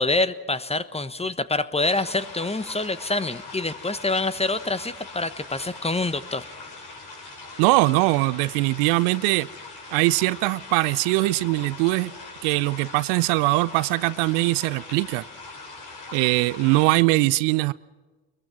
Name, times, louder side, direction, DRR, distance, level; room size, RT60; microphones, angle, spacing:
voice 1, 0.0-6.5, left 2 dB, 15° left, 14 dB, 1.2 m, -26 dB
sound 1, 1.8-17.0, left 3 dB, 60° left, 6.7 m, -41 dB
voice 2, 7.6-9.5 9.9-12.1 12.4-15.2 16.1-17.7, right 21 dB, 70° right, 19 dB, 0.6 m, -21 dB
22.0 x 21.5 x 6.0 m, 1.3 s
hypercardioid pair, 50°, 45 cm